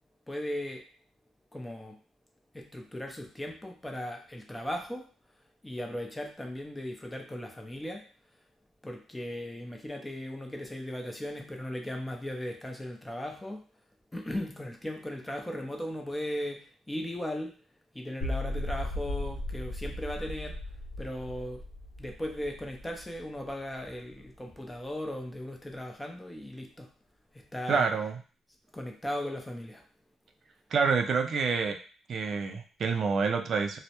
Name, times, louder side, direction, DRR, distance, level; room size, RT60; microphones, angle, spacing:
voice 1, 0.3-0.8 1.5-2.0 2.5-5.1 5.6-8.1 8.8-13.6 14.1-17.5 17.9-20.6 21.0-21.6 22.0-26.9 27.3-27.9 28.7-29.8, left 1 dB, 10° left, 3 dB, 0.5 m, -37 dB
sound 1, 18.2-24.3, left 1 dB, 55° left, 1.0 m, -37 dB
voice 2, 27.7-28.2 30.7-31.8 32.1-33.8, right 5 dB, 55° right, 5 dB, 0.3 m, -27 dB
2.1 x 2.0 x 2.8 m, 0.39 s
cardioid pair, 90°, 0 cm